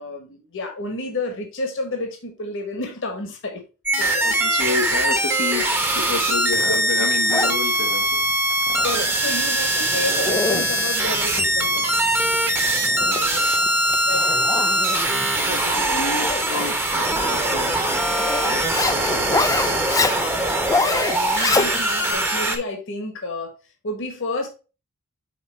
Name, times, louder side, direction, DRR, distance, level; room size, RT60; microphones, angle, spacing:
voice 1, 0.0-3.6 4.0-4.4 6.7-6.8 8.8-11.9 13.0-13.5 14.1-14.5 15.5-16.1 19.4-19.7 20.7-23.5 23.8-24.5, left 2 dB, 60° left, 1.5 m, -31 dB
sound 1, 3.9-22.6, right 1 dB, 10° right, 1.0 m, -22 dB
voice 2, 4.2-8.2 12.8-13.4 15.2-17.8 18.1-19.3, left 3 dB, 80° left, 1.2 m, -30 dB
Zipper (clothing), 6.0-22.1, left 3 dB, 15° left, 0.4 m, -28 dB
5.8 x 4.2 x 4.3 m
head